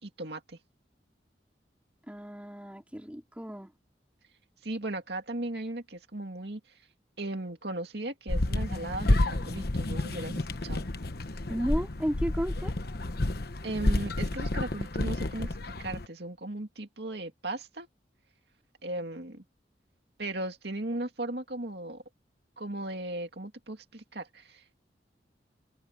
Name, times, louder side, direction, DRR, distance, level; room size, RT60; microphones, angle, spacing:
voice 1, 0.0-0.6 4.6-6.8 7.2-10.9 13.6-17.9 18.8-19.4 20.2-22.0 22.6-24.9, right 1 dB, 65° right, 2.4 m, -37 dB
voice 2, 2.1-3.7 11.5-12.7, equal, 10° right, 3.1 m, -33 dB
sound 1, 8.3-16.1, left 1 dB, 60° left, 1.1 m, -30 dB
head